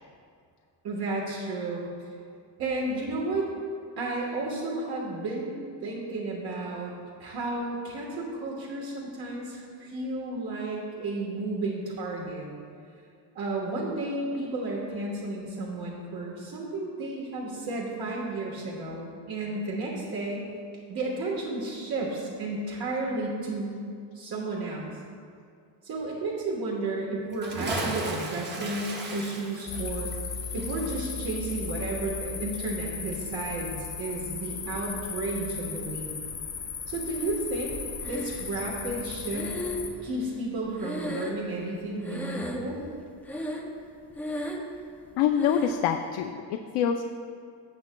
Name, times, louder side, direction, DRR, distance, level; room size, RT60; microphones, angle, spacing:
voice 1, 0.8-1.9 2.6-3.5 4.0-5.5 5.8-6.9 7.2-12.5 13.3-20.5 20.9-23.9 24.1-25.0 25.8-30.1 30.5-36.1 36.9-37.7 38.1-39.6 40.0-42.8, right 2 dB, 55° right, -3 dB, 1.4 m, -32 dB
Bathtub (filling or washing) / Splash splatter, 27.3-32.3 32.5-32.6, right 1 dB, 25° right, 1.0 m, -35 dB
sound 1, 29.7-39.9, left 6 dB, 45° left, 1.0 m, -36 dB
Breathing, 38.0-38.7 39.3-41.8 42.0-42.9 43.2-43.8 44.1-44.8 45.4-45.9, left 1 dB, 5° left, 0.4 m, -35 dB
voice 2, 45.2-47.0, left 9 dB, 80° left, 5 dB, 0.6 m, -26 dB
16.0 x 7.3 x 2.2 m, 2.3 s
cardioid pair, 180°, 43 cm